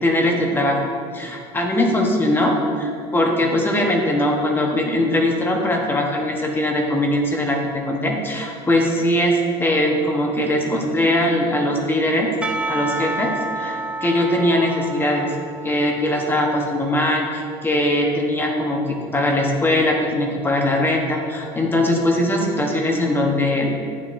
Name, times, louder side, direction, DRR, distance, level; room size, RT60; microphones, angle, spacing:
voice 1, 0.0-12.3 12.7-15.3 15.6-23.7, left 1 dB, 15° left, 1 dB, 1.0 m, -21 dB
Percussion / Church bell, 12.4-16.8, right 2 dB, 10° right, 0.4 m, -30 dB
10.5 x 7.1 x 2.6 m, 2.2 s
cardioid pair, 115°, 13 cm